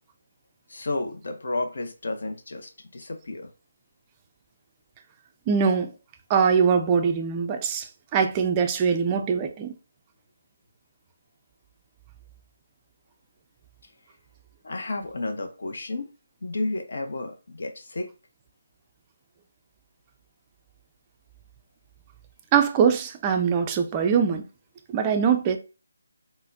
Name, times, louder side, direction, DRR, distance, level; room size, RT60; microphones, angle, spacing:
voice 1, 0.7-3.5 14.6-16.1 16.4-18.1, left 2 dB, 60° left, 0.6 m, -32 dB
voice 2, 5.5-5.9 6.3-9.7 22.5-24.4 24.9-25.6, right 6 dB, 20° right, 0.3 m, -22 dB
3.9 x 2.1 x 2.6 m
figure-of-eight pair, 155°, 0 cm